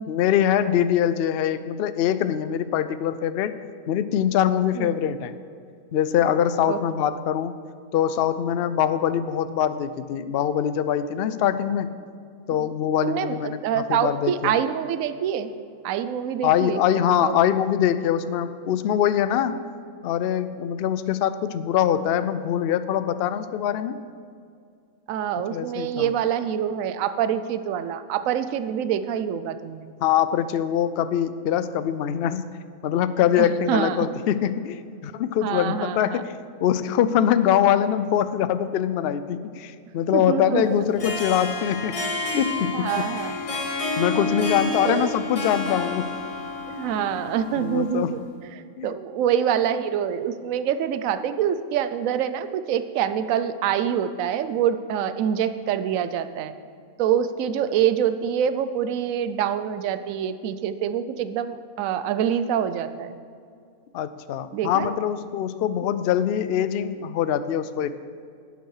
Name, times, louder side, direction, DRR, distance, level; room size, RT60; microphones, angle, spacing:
voice 1, 0.1-3.5 3.9-5.3 5.9-7.5 7.9-11.9 12.5-14.5 16.4-19.7 20.0-24.0 25.5-26.1 30.0-32.5 32.8-36.3 36.6-42.0 42.3-43.1 44.0-46.1 47.6-48.1 48.8-48.9 63.9-68.0, left 9 dB, 75° left, 12 dB, 0.5 m, -23 dB
voice 2, 13.0-15.5 15.8-16.8 17.2-17.4 25.1-29.9 33.4-34.1 35.4-36.2 40.1-40.8 42.7-43.4 44.8-45.1 46.7-48.2 48.8-56.5 57.0-63.1 64.5-64.9, right 9 dB, 70° right, 12 dB, 1.0 m, -25 dB
Harp, 40.8-48.2, left 2 dB, 25° left, 0.9 m, -30 dB
11.0 x 9.2 x 4.8 m, 2.3 s
omnidirectional pair, 1.6 m